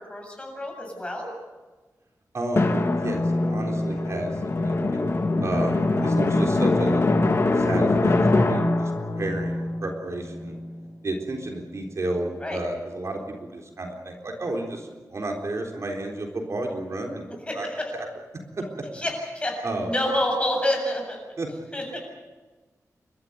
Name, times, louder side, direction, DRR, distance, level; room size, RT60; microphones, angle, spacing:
voice 1, 0.1-1.3 12.4-12.6 17.5-17.9 18.9-21.2 21.7-22.0, left 1 dB, 20° left, 1 dB, 7.7 m, -28 dB
voice 2, 2.3-7.1 7.5-10.6 11.0-17.2 17.5-17.7 17.9-18.1 18.6-18.7 19.6-19.9 21.4-21.5, right 2 dB, 55° right, 1 dB, 3.8 m, -32 dB
Drum, 2.6-10.8, left 2 dB, 45° left, 2.6 m, -23 dB
29.5 x 13.5 x 9.5 m, 1.3 s
wide cardioid pair, 120°, 6 cm